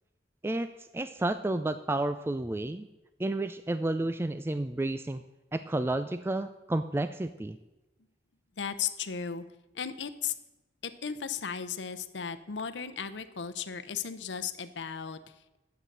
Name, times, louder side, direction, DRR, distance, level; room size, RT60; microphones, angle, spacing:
voice 1, 0.4-2.9 3.2-5.2 5.5-7.6, right 2 dB, 15° right, 11 dB, 0.3 m, -31 dB
voice 2, 8.6-9.4 9.7-10.3 10.8-15.6, left 7 dB, 85° left, 11 dB, 0.7 m, -36 dB
10.0 x 8.0 x 6.6 m, 0.98 s
head